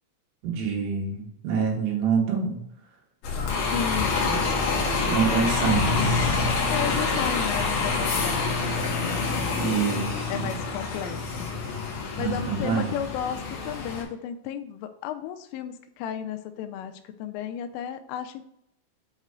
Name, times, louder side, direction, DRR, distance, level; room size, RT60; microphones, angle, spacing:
voice 1, 0.4-2.6 4.3-4.4 5.0-6.5 9.6-10.6 12.2-12.9, right 6 dB, 90° right, -1 dB, 4.1 m, -27 dB
Bus, 3.2-14.0, left 4 dB, 60° left, 2.3 m, -26 dB
voice 2, 3.7-4.3 6.7-9.6 10.3-11.5 12.2-18.4, left 9 dB, 85° left, 8 dB, 3.1 m, -34 dB
8.7 x 3.2 x 3.7 m, 0.73 s
omnidirectional pair, 5.6 m